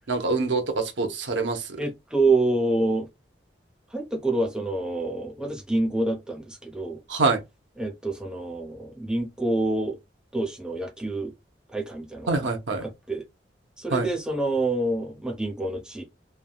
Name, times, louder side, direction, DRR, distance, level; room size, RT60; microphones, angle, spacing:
voice 1, 0.1-1.6 7.1-7.4 12.3-12.8 13.9-14.1, right 3 dB, 80° right, 0.8 m, -25 dB
voice 2, 1.8-3.1 3.9-7.0 7.8-10.0 10.3-11.3 11.7-12.5 12.8-13.2 13.8-16.0, right 2 dB, 5° right, 0.8 m, -27 dB
3.3 x 2.2 x 2.3 m
head